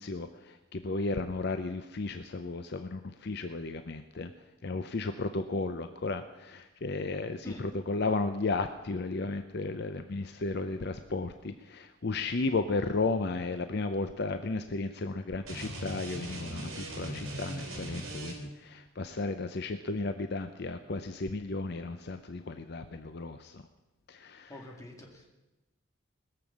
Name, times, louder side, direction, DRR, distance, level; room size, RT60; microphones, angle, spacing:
voice 1, 0.0-4.3 4.6-23.6 24.1-24.5, left 3 dB, 50° left, 8 dB, 0.6 m, -34 dB
sound 1, 15.4-18.7, right 1 dB, 70° right, 3.9 m, -39 dB
voice 2, 24.5-25.3, left 1 dB, 15° left, 0 dB, 2.3 m, -46 dB
20.0 x 6.9 x 7.3 m, 1.1 s
head